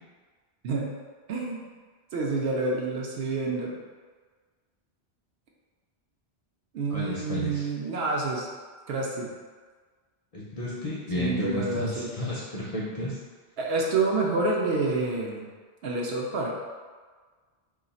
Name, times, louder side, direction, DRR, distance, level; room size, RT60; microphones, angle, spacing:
voice 1, 1.3-1.7 2.1-3.8 6.7-8.5 8.9-9.3 11.1-12.1 13.6-15.5 15.8-16.5, right 3 dB, 70° right, -1 dB, 0.8 m, -28 dB
voice 2, 6.9-7.7 10.3-13.2, left 1 dB, 50° left, -7 dB, 0.5 m, -32 dB
2.4 x 2.4 x 3.9 m, 1.5 s
omnidirectional pair, 1.1 m